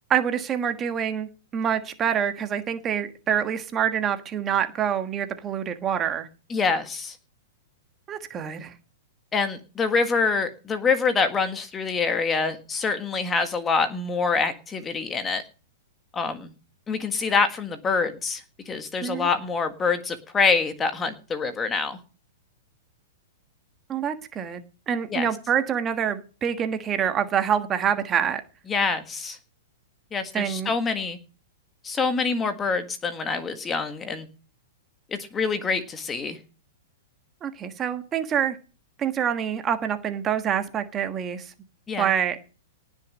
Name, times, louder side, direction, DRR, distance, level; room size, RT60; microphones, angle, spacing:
voice 1, 0.1-6.3 8.1-8.7 19.0-19.3 23.9-24.6 24.9-28.4 30.3-30.7 37.4-38.6 39.0-41.5 42.0-42.4, right 8 dB, 20° right, 1.5 m, -26 dB
voice 2, 6.5-7.2 9.3-15.4 16.1-16.5 16.9-22.0 25.1-25.3 28.7-29.4 30.1-31.2 31.8-34.3 35.1-36.4 41.9-42.1, left 4 dB, 15° left, 1.6 m, -25 dB
18.5 x 6.6 x 6.3 m
hypercardioid pair, 140°, 0 cm